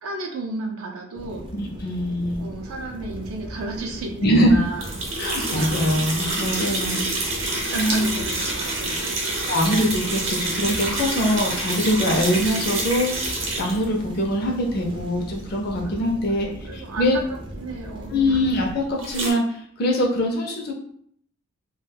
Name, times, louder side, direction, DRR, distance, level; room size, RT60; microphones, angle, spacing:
voice 1, 0.0-1.5 2.4-5.8 6.9-7.2 7.5-9.2 15.8-17.2 17.5-18.4, right 2 dB, 80° right, 1 dB, 0.4 m, -34 dB
sound 1, 1.1-18.7, equal, 25° right, 0.4 m, -38 dB
voice 2, 1.5-2.4 4.2-4.6 5.2-7.1 7.7-8.1 9.5-17.2 18.1-20.7, equal, 45° left, 0 dB, 0.5 m, -23 dB
sound 2, 4.8-13.8 19.0-19.3, right 2 dB, 60° right, 0.8 m, -27 dB
2.3 x 2.2 x 3.3 m, 0.64 s
head